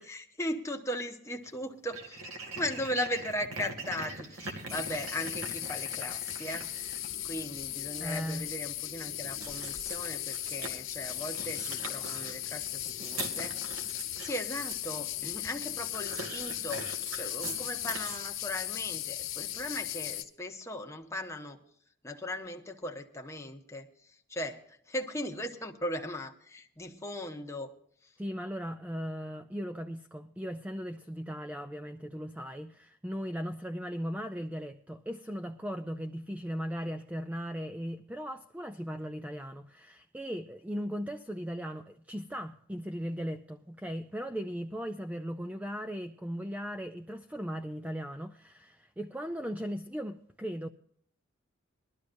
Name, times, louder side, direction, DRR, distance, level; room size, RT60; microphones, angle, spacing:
voice 1, 0.0-13.6 14.2-21.6 22.0-27.7 28.0-28.1, left 1 dB, 15° left, 1.1 m, -38 dB
sound 1, 1.4-1.5 1.9-7.1 9.3-10.7 11.1-15.0 15.9-18.2, right 2 dB, 85° right, 2.4 m, -42 dB
sound 2, 4.7-20.2, left 13 dB, 65° left, 1.2 m, -37 dB
voice 2, 8.0-8.5 28.2-50.7, equal, 5° right, 0.4 m, -38 dB
21.0 x 12.5 x 2.6 m
head